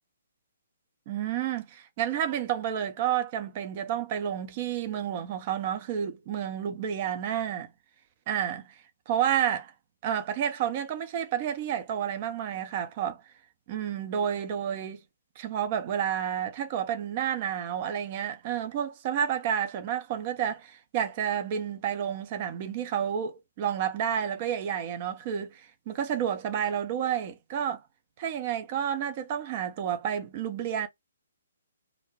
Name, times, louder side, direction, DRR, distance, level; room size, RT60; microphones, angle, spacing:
voice 1, 1.1-7.7 8.3-8.8 9.1-9.7 10.0-13.2 13.7-15.0 15.4-27.8 28.2-30.9, right 9 dB, 35° right, 0.6 m, -30 dB
2.5 x 2.1 x 3.1 m
figure-of-eight pair, 130°, 0 cm